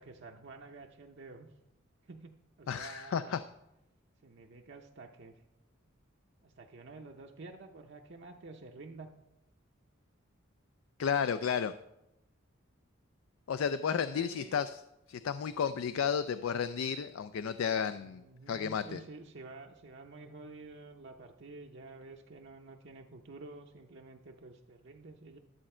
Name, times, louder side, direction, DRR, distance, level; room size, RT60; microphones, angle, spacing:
voice 1, 0.0-1.5 2.0-3.3 4.2-5.4 6.4-9.1 13.8-14.6 18.0-25.4, right 3 dB, 60° right, 2 dB, 0.7 m, -50 dB
voice 2, 2.7-3.4 11.0-11.7 13.5-14.8 15.1-19.0, left 7 dB, 80° left, 12 dB, 0.4 m, -32 dB
11.5 x 7.4 x 4.3 m, 0.89 s
head